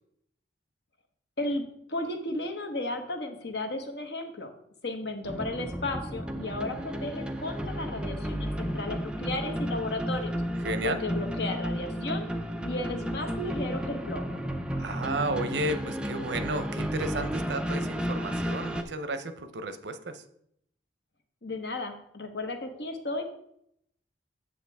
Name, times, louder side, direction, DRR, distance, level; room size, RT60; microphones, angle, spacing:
voice 1, 1.4-4.5 4.8-10.3 10.8-12.3 12.6-14.4 21.4-23.2, left 2 dB, 70° left, 5 dB, 1.1 m, -34 dB
sound 1, 5.2-18.8, equal, 5° right, 0.5 m, -33 dB
voice 2, 10.6-11.0 14.7-20.2, right 2 dB, 80° right, 10 dB, 0.7 m, -32 dB
8.8 x 7.1 x 3.5 m, 0.73 s
head